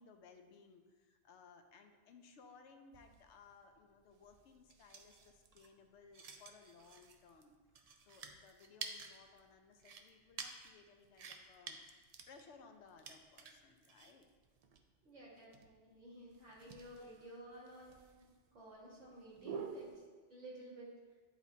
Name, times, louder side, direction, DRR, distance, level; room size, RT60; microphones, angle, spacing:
voice 1, 0.0-7.6 8.0-12.0 12.3-14.3 16.9-17.2 17.5-17.8, left 5 dB, 75° left, 6 dB, 0.9 m, -61 dB
sound 1, 2.9-20.0, right 5 dB, 55° right, 0.4 m, -52 dB
voice 2, 15.0-18.3 18.5-20.9, right 1 dB, 85° right, -7 dB, 2.2 m, -54 dB
10.0 x 4.1 x 2.7 m, 1.4 s
omnidirectional pair, 1.2 m